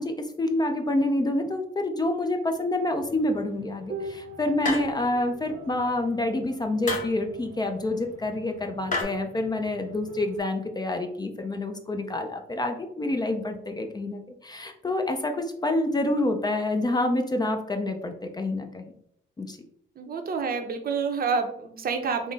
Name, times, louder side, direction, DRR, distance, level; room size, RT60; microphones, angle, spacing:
voice 1, 0.0-18.9 19.4-19.6, left 2 dB, 20° left, 5 dB, 0.4 m, -27 dB
sound 1, 2.9-10.4, right 2 dB, 85° right, 0.7 m, -44 dB
sound 2, 4.6-5.2 6.9-7.2 8.9-9.0, left 3 dB, 40° left, 1.0 m, -30 dB
voice 2, 20.0-22.3, right 5 dB, 50° right, 6 dB, 0.6 m, -28 dB
3.7 x 2.0 x 3.9 m, 0.68 s
cardioid pair, 90°, 20 cm